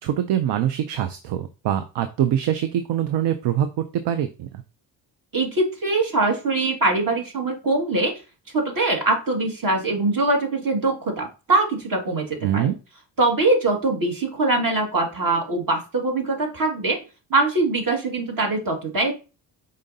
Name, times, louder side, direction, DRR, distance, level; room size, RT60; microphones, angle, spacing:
voice 1, 0.0-4.6 12.4-12.8, right 10 dB, 60° right, 11 dB, 0.6 m, -24 dB
voice 2, 5.3-8.1 8.5-12.7 13.2-17.0 17.3-19.1, right 2 dB, 40° right, 2 dB, 2.0 m, -22 dB
4.9 x 3.8 x 2.7 m, 0.32 s
hypercardioid pair, 45°, 49 cm